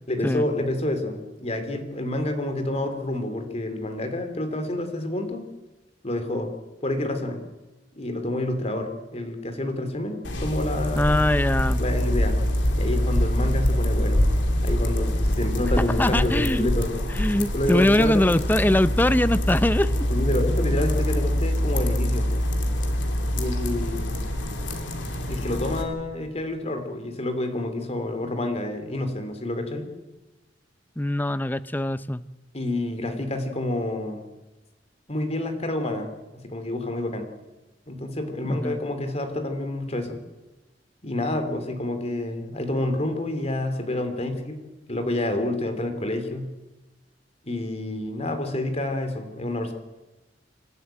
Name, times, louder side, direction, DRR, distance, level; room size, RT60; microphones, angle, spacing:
voice 1, 0.1-5.4 6.0-6.5 6.8-7.4 8.0-11.1 11.8-12.4 12.8-14.2 14.6-16.9 17.5-18.2 20.1-22.3 23.3-24.2 25.3-29.9 32.5-34.3 35.1-36.1 36.4-37.3 37.9-40.2 41.0-44.6 44.9-46.5 47.4-49.7, left 1 dB, 35° left, 8 dB, 2.9 m, -28 dB
sound 1, 10.2-25.8, equal, 85° left, 2.8 m, -24 dB
voice 2, 11.0-11.8 15.8-16.7 17.1-20.1 31.0-32.2 38.4-38.8, left 1 dB, 10° left, 15 dB, 0.6 m, -22 dB
28.0 x 12.0 x 9.0 m, 1.1 s
head